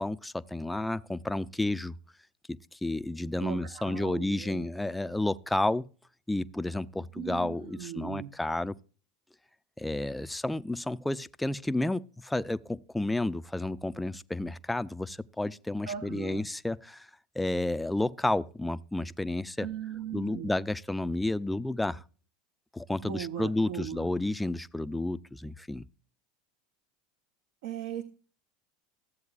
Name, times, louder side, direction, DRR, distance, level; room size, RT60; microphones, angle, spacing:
voice 1, 0.0-1.9 2.7-5.9 6.3-8.7 9.8-17.1 17.4-19.7 20.1-22.0 22.7-25.8, left 2 dB, 5° left, 0.4 m, -31 dB
voice 2, 3.4-4.6 7.1-8.3 15.8-16.5 19.6-20.5 23.0-24.1 27.6-28.0, right 10 dB, 70° right, 0.7 m, -39 dB
14.0 x 7.7 x 2.4 m
hypercardioid pair, 80°, 0 cm